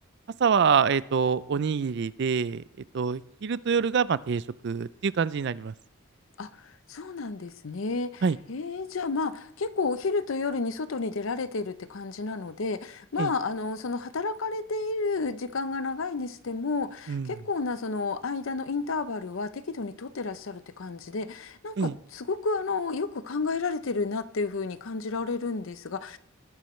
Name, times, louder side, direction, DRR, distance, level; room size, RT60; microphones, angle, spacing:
voice 1, 0.4-2.6 2.9-5.7 8.2-8.4 13.2-13.3 17.1-17.3 21.8-21.9, right 6 dB, 55° right, 0.4 m, -25 dB
voice 2, 6.4-8.2 8.5-26.2, left 4 dB, 70° left, 0.6 m, -31 dB
19.0 x 10.0 x 3.2 m
head